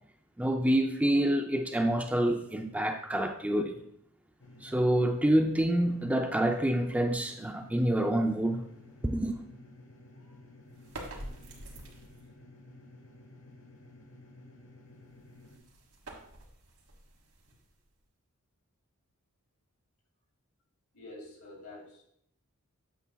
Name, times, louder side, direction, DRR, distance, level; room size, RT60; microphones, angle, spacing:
voice 1, 0.4-3.7 4.6-8.6 9.1-9.4, right 1 dB, 5° right, 0.4 m, -27 dB
Quiet Car Motor, 4.4-15.6, left 2 dB, 60° left, 1.1 m, -53 dB
sound 1, 10.7-12.3 15.1-18.0, right 1 dB, 80° right, 1.6 m, -47 dB
voice 2, 20.9-22.0, left 2 dB, 85° left, 2.3 m, -47 dB
8.3 x 6.8 x 2.3 m
head